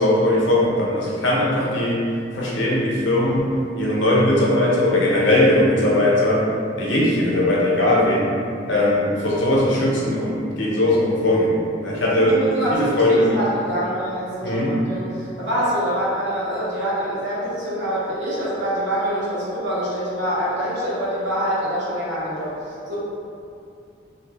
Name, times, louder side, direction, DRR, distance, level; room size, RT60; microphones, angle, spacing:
voice 1, 0.0-2.0 2.3-3.5 3.8-6.4 6.8-8.4 8.7-11.5 11.8-12.4 12.7-13.4 14.4-14.7, left 1 dB, 90° left, -5 dB, 0.8 m, -19 dB
voice 2, 12.2-23.0, equal, 85° right, -8 dB, 1.1 m, -25 dB
2.8 x 2.7 x 3.3 m, 2.5 s
head